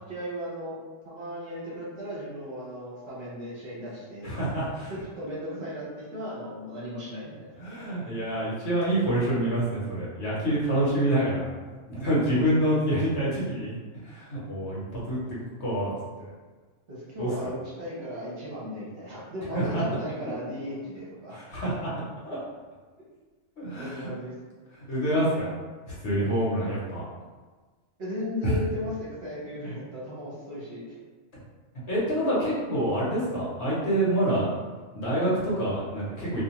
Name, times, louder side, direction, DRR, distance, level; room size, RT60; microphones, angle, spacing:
voice 1, 0.1-0.8 1.0-4.3 4.9-7.5 12.3-12.5 16.9-21.4 23.8-24.3 28.0-30.9, equal, 55° right, -8 dB, 0.9 m, -36 dB
voice 2, 4.2-4.9 7.6-11.5 11.9-13.8 14.0-15.9 17.2-17.3 19.5-19.8 20.2-20.4 21.3-21.9 22.2-22.4 23.6-24.1 24.9-25.5 26.0-27.0 28.4-28.6 31.9-34.5 34.9-36.4, right 1 dB, 60° left, -8 dB, 1.0 m, -27 dB
2.4 x 2.3 x 2.9 m, 1.4 s
omnidirectional pair, 1.4 m